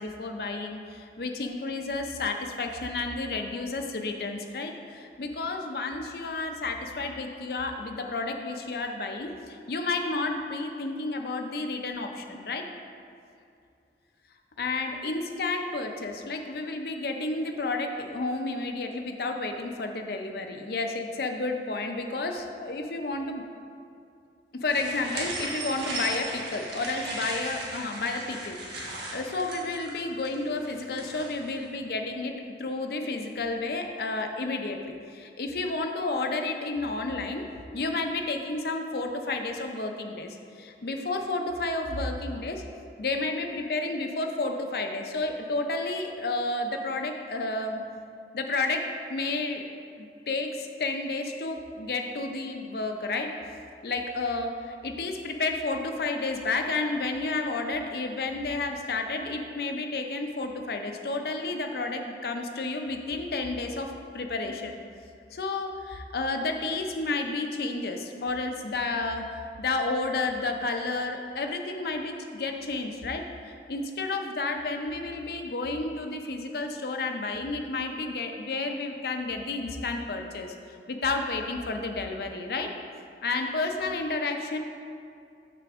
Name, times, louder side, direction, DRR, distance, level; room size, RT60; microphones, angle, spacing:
voice 1, 0.0-12.7 14.6-23.4 24.5-28.6 28.9-32.3 32.6-37.5 37.7-42.6 43.0-47.8 48.3-49.6 50.0-53.3 53.8-64.8 65.3-69.3 69.6-80.5 80.9-82.7 83.2-84.6, left 3 dB, 60° left, 4 dB, 0.5 m, -31 dB
sound 1, 24.7-31.5, right 1 dB, 70° right, 1.1 m, -36 dB
6.8 x 3.4 x 6.1 m, 2.4 s
head